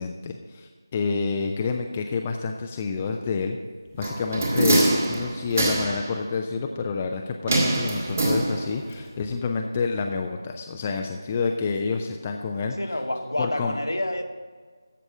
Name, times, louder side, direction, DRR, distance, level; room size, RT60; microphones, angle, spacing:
voice 1, 0.0-3.6 3.9-12.8 13.4-13.8, left 4 dB, 15° left, 3 dB, 0.4 m, -28 dB
sound 1, 4.0-6.1 7.5-8.9 9.2-9.3, right 1 dB, 35° right, 1.7 m, -24 dB
voice 2, 12.8-14.2, left 1 dB, 65° left, 6 dB, 1.3 m, -28 dB
14.0 x 5.3 x 8.2 m, 1.5 s
figure-of-eight pair, 165°, 2 cm